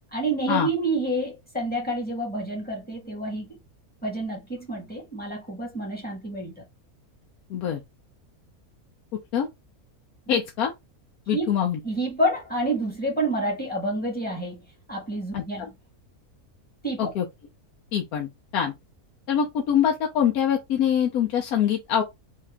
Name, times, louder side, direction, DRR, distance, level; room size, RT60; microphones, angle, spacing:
voice 1, 0.1-3.6 4.0-6.6 11.3-11.5 11.8-14.6 14.9-15.7 16.8-17.1, right 1 dB, 5° left, 1.4 m, -28 dB
voice 2, 7.5-7.8 9.3-9.5 10.3-10.7 11.3-11.8 15.3-15.4 17.0-17.3 17.9-18.7 19.3-22.0, left 9 dB, 80° left, 1.2 m, -24 dB
3.6 x 2.8 x 3.5 m
omnidirectional pair, 1.6 m